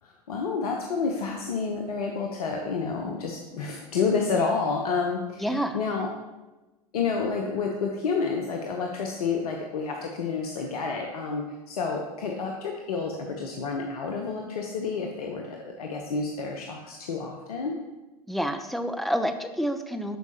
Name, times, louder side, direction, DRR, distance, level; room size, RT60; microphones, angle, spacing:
voice 1, 0.0-6.1 6.9-17.8, left 4 dB, 75° left, 2 dB, 0.8 m, -29 dB
voice 2, 5.4-5.8 18.3-20.2, equal, ahead, 8 dB, 0.6 m, -28 dB
11.5 x 4.7 x 2.8 m, 1.1 s
hypercardioid pair, 85°, 19 cm